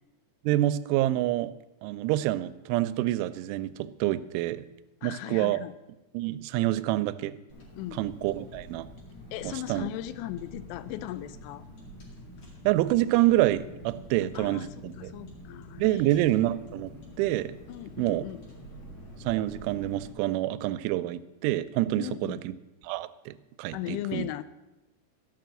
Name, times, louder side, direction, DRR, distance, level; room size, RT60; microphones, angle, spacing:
voice 1, 0.4-1.5 1.8-4.6 5.0-5.6 6.1-7.3 8.0-8.9 9.4-9.9 12.7-15.1 15.8-16.9 17.2-17.6 18.0-18.2 19.2-22.5 22.8-24.3, right 15 dB, 90° right, 14 dB, 3.0 m, -27 dB
voice 2, 5.0-5.8 7.8-8.0 9.3-11.6 14.3-14.7 15.0-16.3 17.7-18.4 22.0-22.4 23.7-24.4, left 14 dB, 85° left, 15 dB, 3.0 m, -38 dB
Car, 7.5-20.1, equal, 40° left, 2.2 m, -47 dB
13.0 x 5.9 x 7.6 m, 1.0 s
omnidirectional pair, 5.4 m